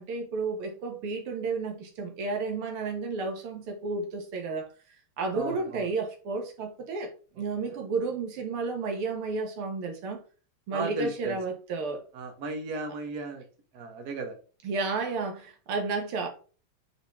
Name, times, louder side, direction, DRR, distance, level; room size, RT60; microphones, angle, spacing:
voice 1, 0.0-4.7 5.2-10.2 10.7-12.0 14.6-16.3, right 4 dB, 85° right, 2.2 m, -32 dB
voice 2, 5.3-5.8 10.7-11.4 12.2-13.4 13.7-14.4, right 3 dB, 50° right, 1.8 m, -35 dB
8.1 x 4.0 x 3.6 m
omnidirectional pair, 2.4 m